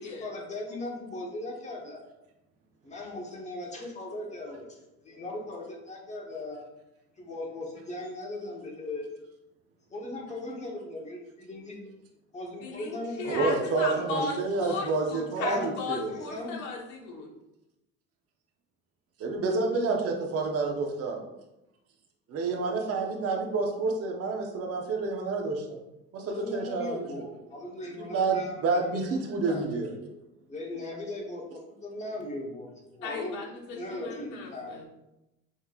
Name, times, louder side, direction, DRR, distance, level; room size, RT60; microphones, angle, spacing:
voice 1, 0.0-2.0 2.8-4.8 5.0-6.6 7.2-9.1 9.9-11.9 12.3-13.3 14.1-14.3 15.4-15.7 16.3-16.6 26.3-28.9 29.3-29.9 30.5-32.7 32.9-33.4 33.7-34.8, left 2 dB, 25° left, 0 dB, 1.1 m, -38 dB
voice 2, 12.6-17.3 33.0-34.9, left 3 dB, 75° left, -1 dB, 1.3 m, -36 dB
voice 3, 13.2-16.2 19.2-21.2 22.3-25.8 26.1-27.3 28.0-29.9, right 3 dB, 50° right, 1 dB, 1.0 m, -29 dB
5.6 x 3.1 x 2.4 m, 0.92 s
cardioid pair, 105°, 30 cm